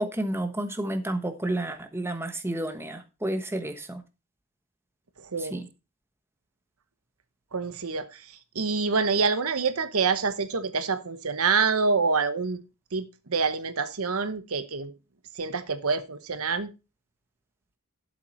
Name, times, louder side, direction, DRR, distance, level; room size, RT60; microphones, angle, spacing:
voice 1, 0.0-4.0 5.4-5.7, right 1 dB, 10° right, 1.2 m, -31 dB
voice 2, 5.2-5.6 7.5-8.2 8.5-12.6 12.9-14.9 15.4-16.7, right 4 dB, 75° right, 1.0 m, -26 dB
12.0 x 7.4 x 4.3 m
head